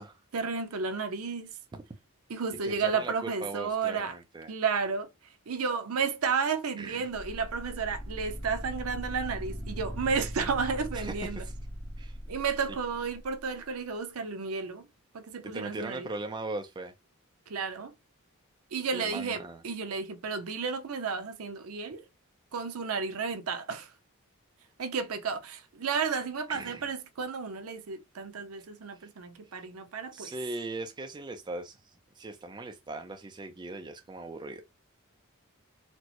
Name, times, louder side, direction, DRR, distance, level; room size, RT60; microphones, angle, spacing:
voice 1, 0.3-1.5 2.3-4.1 4.5-5.1 5.5-11.4 12.3-14.8 15.1-16.1 17.5-17.9 18.7-22.0 22.5-23.9 24.8-30.3, right 5 dB, 75° right, 0.6 m, -32 dB
voice 2, 2.6-4.5 6.8-7.1 10.9-11.5 12.0-12.2 15.4-16.9 18.9-19.6 26.5-26.9 29.0-29.1 29.5-29.6 30.1-31.8 32.2-34.6, right 2 dB, 20° right, 0.4 m, -39 dB
sound 1, 7.1-13.3, equal, 5° left, 0.8 m, -39 dB
4.3 x 2.0 x 2.9 m
head